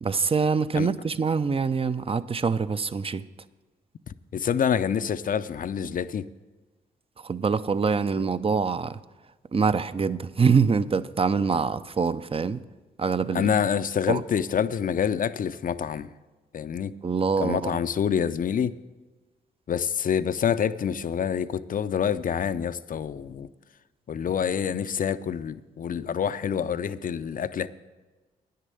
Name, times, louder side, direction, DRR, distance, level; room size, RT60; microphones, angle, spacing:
voice 1, 0.0-3.2 7.2-9.0 9.5-12.6 13.0-13.5 14.1-14.2 17.0-17.8, right 5 dB, 30° right, 14 dB, 0.6 m, -25 dB
voice 2, 4.3-6.3 13.3-16.1 16.5-16.9 17.4-18.8 19.7-23.5 24.1-27.7, left 8 dB, 45° left, 14 dB, 0.5 m, -27 dB
10.0 x 6.7 x 7.7 m, 1.2 s
supercardioid pair, 45°, 19 cm